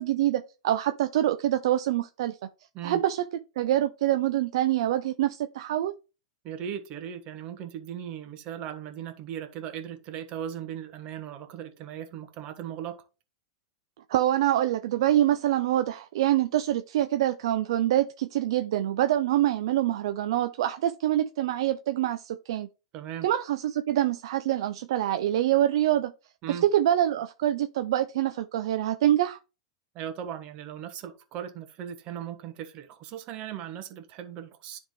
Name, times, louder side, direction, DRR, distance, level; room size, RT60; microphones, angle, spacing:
voice 1, 0.0-2.4 2.8-3.2 3.6-5.9 14.1-22.7 23.2-26.1 26.5-29.4, right 12 dB, 70° right, 0.4 m, -25 dB
voice 2, 6.4-13.0 22.9-23.3 26.4-26.6 29.9-34.8, right 9 dB, 45° right, 1.3 m, -38 dB
10.5 x 3.6 x 3.2 m
hypercardioid pair, 120°, 3 cm